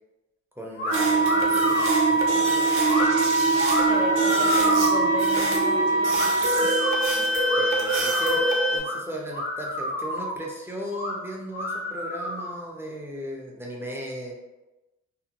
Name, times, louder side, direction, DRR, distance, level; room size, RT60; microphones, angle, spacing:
voice 1, 0.6-2.6 7.6-8.4 8.7-14.4, equal, 10° right, -2 dB, 0.5 m, -36 dB
sound 1, 0.8-1.0 1.2-2.0 2.8-3.1 3.6-5.2 6.1-7.0 7.5-8.4 8.8-9.0 9.3-10.4 10.9-11.1 11.5-12.6, left 1 dB, 45° left, 0.8 m, -29 dB
sound 2, 0.9-8.8, right 3 dB, 45° right, 0.7 m, -22 dB
voice 2, 3.9-6.8 7.8-7.9, left 2 dB, 80° left, 1 dB, 0.5 m, -35 dB
2.5 x 2.0 x 2.8 m, 1.0 s
cardioid pair, 90°, 30 cm